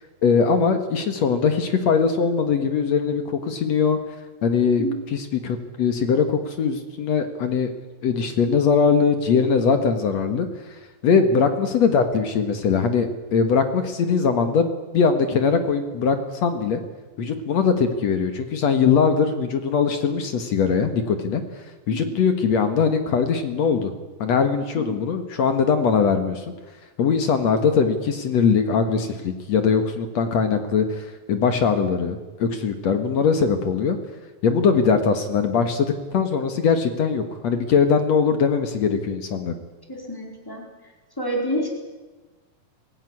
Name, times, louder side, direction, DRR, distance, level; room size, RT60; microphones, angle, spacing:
voice 1, 0.2-4.0 4.4-7.7 8.0-10.5 11.0-16.8 17.2-21.4 21.9-23.9 24.2-26.5 27.0-34.0 34.4-39.6, left 5 dB, 55° left, 8 dB, 2.3 m, -21 dB
voice 2, 21.9-22.2 24.7-24.8 39.9-40.7 41.2-41.7, equal, 5° left, 1 dB, 4.1 m, -28 dB
23.5 x 16.0 x 9.9 m, 1.2 s
omnidirectional pair, 4.2 m